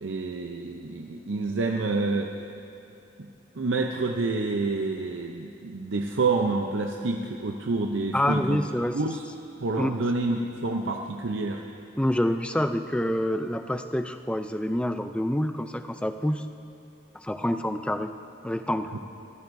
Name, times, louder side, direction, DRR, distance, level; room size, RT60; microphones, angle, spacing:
voice 1, 0.0-2.3 3.2-3.3 3.5-8.6 8.9-9.2 9.6-11.6 18.9-19.0, right 3 dB, 80° right, 2 dB, 0.6 m, -28 dB
voice 2, 8.1-9.0 9.8-9.9 12.0-16.4 17.2-18.1 18.4-18.9, left 1 dB, 5° left, 8 dB, 0.4 m, -27 dB
25.0 x 14.0 x 2.6 m, 2.7 s
head